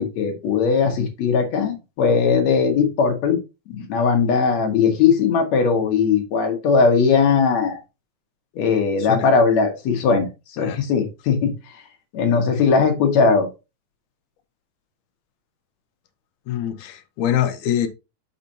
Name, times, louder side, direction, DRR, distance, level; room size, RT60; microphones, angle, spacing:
voice 1, 0.0-3.4 3.7-7.8 8.6-11.5 12.1-13.5, left 5 dB, 65° left, 2.4 m, -19 dB
voice 2, 16.5-17.9, left 10 dB, 90° left, 2.3 m, -24 dB
6.7 x 6.5 x 2.7 m
omnidirectional pair, 3.5 m